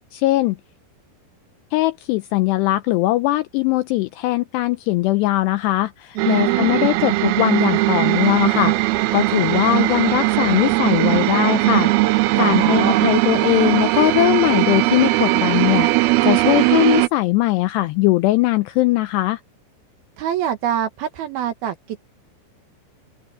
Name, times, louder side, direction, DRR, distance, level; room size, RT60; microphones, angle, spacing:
voice 1, 0.1-0.6 1.7-8.8 9.1-11.9 12.4-19.4, left 18 dB, 80° left, 2.4 m, -20 dB
voice 2, 6.2-7.1 12.4-13.1 20.2-22.0, right 10 dB, 65° right, 2.7 m, -25 dB
sound 1, 6.2-17.1, right 19 dB, 90° right, 2.1 m, -19 dB
open air
omnidirectional pair, 5.4 m